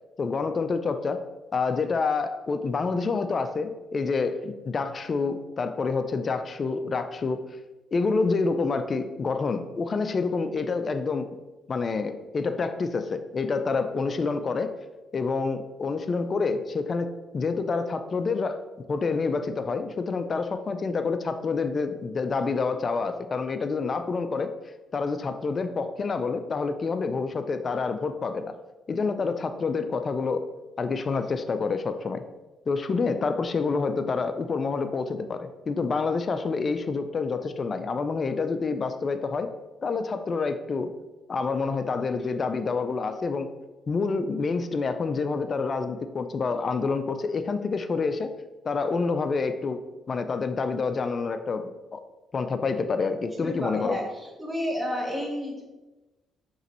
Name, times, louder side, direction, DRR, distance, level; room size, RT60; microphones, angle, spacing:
voice 1, 0.2-1.2 1.5-7.4 7.9-11.3 11.7-14.7 15.1-18.6 18.9-24.5 24.9-28.5 28.9-30.4 30.8-32.2 32.7-39.5 39.8-40.9 41.3-43.5 43.9-48.3 48.6-49.8 50.1-51.6 51.9-52.0 52.3-54.0, left 4 dB, 40° left, 9 dB, 0.4 m, -27 dB
voice 2, 53.4-54.0 54.4-55.6, equal, 5° right, -3 dB, 1.3 m, -30 dB
5.5 x 3.0 x 3.0 m, 1.1 s
cardioid pair, 90°, 0 cm